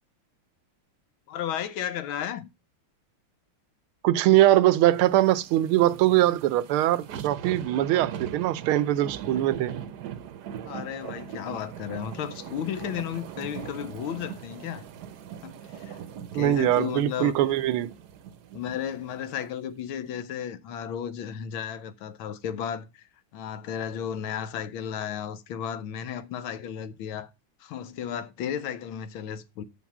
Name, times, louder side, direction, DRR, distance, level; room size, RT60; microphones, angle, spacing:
voice 1, 1.3-2.5 10.6-14.8 15.4-16.0 16.3-17.4 18.5-23.1 23.3-27.3 27.6-29.6, left 9 dB, 75° left, 1.6 m, -34 dB
voice 2, 4.0-9.7 16.3-17.9, right 14 dB, 80° right, 1.5 m, -22 dB
sound 1, 4.8-19.3 19.7-19.8, right 9 dB, 60° right, 1.1 m, -40 dB
6.2 x 6.1 x 7.1 m
omnidirectional pair, 2.3 m